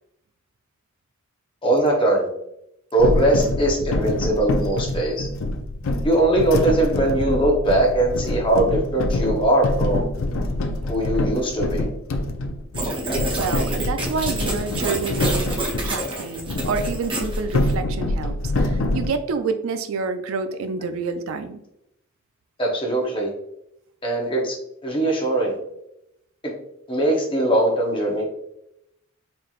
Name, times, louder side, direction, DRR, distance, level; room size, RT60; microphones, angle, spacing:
voice 1, 1.6-2.3 2.9-5.3 6.0-10.1 10.9-11.9 22.6-23.3 24.0-24.6 24.8-25.6 26.9-28.2, right 1 dB, 25° left, -1 dB, 0.8 m, -21 dB
sound 1, 3.0-16.0 16.4-19.1, left 2 dB, 80° left, 0.4 m, -25 dB
sound 2, 12.7-17.7, right 1 dB, 25° right, 0.7 m, -28 dB
voice 2, 13.4-21.6, right 4 dB, 80° right, 10 dB, 0.4 m, -28 dB
4.1 x 3.1 x 2.4 m, 0.80 s
head